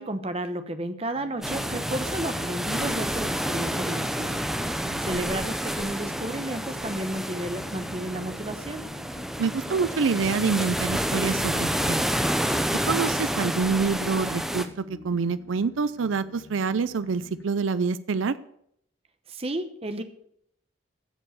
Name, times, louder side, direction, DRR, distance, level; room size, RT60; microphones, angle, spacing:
voice 1, 0.0-4.4 5.0-8.8 19.3-20.0, right 1 dB, 30° right, 9 dB, 1.0 m, -32 dB
sound 1, 1.1-17.4, left 2 dB, 85° left, 1.2 m, -47 dB
sound 2, 1.4-14.7, equal, ahead, 0.7 m, -29 dB
voice 2, 4.8-5.3 9.4-12.0 12.8-18.4, right 5 dB, 85° right, 15 dB, 0.5 m, -26 dB
15.0 x 5.4 x 7.9 m, 0.72 s
head